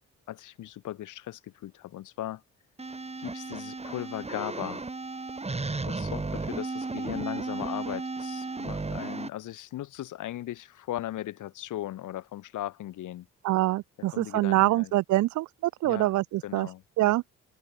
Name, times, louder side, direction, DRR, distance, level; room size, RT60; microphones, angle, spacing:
voice 1, 0.3-2.4 3.2-4.8 5.8-13.3 14.1-14.9 15.8-16.1 16.4-17.1, left 13 dB, 80° left, 7.6 m, -38 dB
sound 1, 2.8-9.3, right 3 dB, 20° right, 4.2 m, -34 dB
voice 2, 13.4-16.7 17.0-17.2, right 17 dB, 70° right, 0.5 m, -25 dB
open air
cardioid pair, 90°, 30 cm